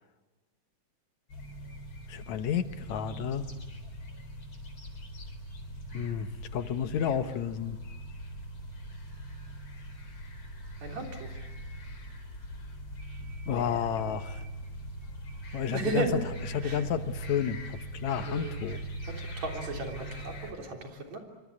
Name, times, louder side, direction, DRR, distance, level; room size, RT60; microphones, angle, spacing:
sound 1, 1.3-20.5, right 1 dB, 45° left, 4.6 m, -41 dB
voice 1, 2.1-3.5 5.9-7.8 13.5-14.4 15.5-16.1 16.5-18.8, left 8 dB, 75° left, 10 dB, 2.4 m, -31 dB
voice 2, 10.8-11.3 15.7-16.2 16.6-16.9 18.2-18.8 19.1-21.2, right 3 dB, 70° right, 2 dB, 4.7 m, -35 dB
27.0 x 24.5 x 8.5 m, 1.2 s
omnidirectional pair, 3.3 m